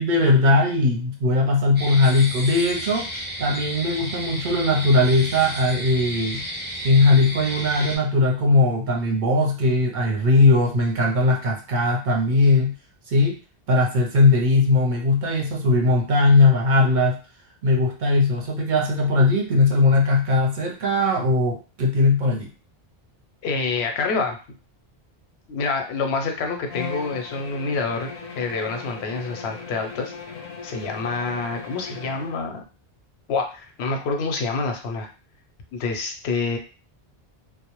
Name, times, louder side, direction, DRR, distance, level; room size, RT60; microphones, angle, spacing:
voice 1, 0.0-3.1 3.4-6.4 6.8-12.7 13.1-13.4 13.7-17.2 17.6-22.5, left 2 dB, 60° right, 0 dB, 0.6 m, -19 dB
sound 1, 1.8-8.0, equal, 10° right, 0.8 m, -32 dB
voice 2, 23.4-24.4 25.5-28.1 28.4-30.1 30.6-32.6 33.3-35.1 35.7-36.6, left 4 dB, 85° left, 4 dB, 0.8 m, -27 dB
Bowed string instrument, 26.7-32.5, left 5 dB, 55° left, 0.5 m, -37 dB
2.1 x 2.0 x 2.9 m, 0.34 s
omnidirectional pair, 1.0 m